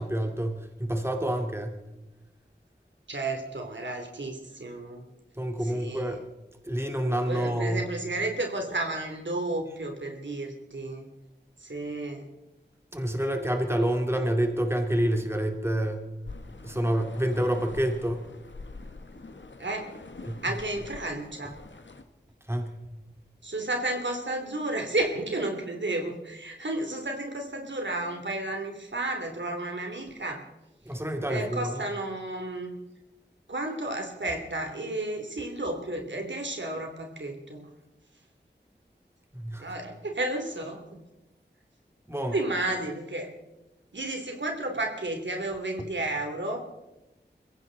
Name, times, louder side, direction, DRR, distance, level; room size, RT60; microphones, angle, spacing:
voice 1, 0.0-1.8 5.4-6.2 6.7-7.9 12.9-16.1 16.6-18.2 20.2-20.4 22.5-22.7 30.8-31.8 39.3-39.7 42.1-42.4, right 1 dB, 15° right, 3 dB, 2.5 m, -28 dB
voice 2, 3.1-5.0 5.6-6.2 7.3-11.1 11.6-12.2 19.6-19.9 20.4-21.5 23.4-30.4 31.3-32.7 33.5-37.7 39.6-41.0 42.3-43.3 43.9-46.6, right 2 dB, 80° right, 3 dB, 2.9 m, -32 dB
sound 1, 16.2-22.0, left 3 dB, 85° left, 1.4 m, -45 dB
22.5 x 16.0 x 4.0 m, 0.99 s
wide cardioid pair, 45°, 19 cm